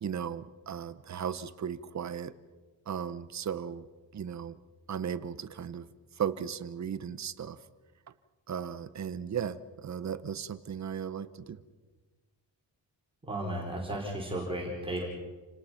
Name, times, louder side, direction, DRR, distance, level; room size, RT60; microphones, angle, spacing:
voice 1, 0.0-2.3 2.9-3.9 4.1-4.6 4.9-5.9 6.2-7.6 8.5-11.6, right 8 dB, 40° right, 15 dB, 0.9 m, -36 dB
voice 2, 13.2-15.0, right 1 dB, 10° right, -2 dB, 4.5 m, -34 dB
29.0 x 18.5 x 5.8 m, 1.3 s
wide cardioid pair, 180°, 45 cm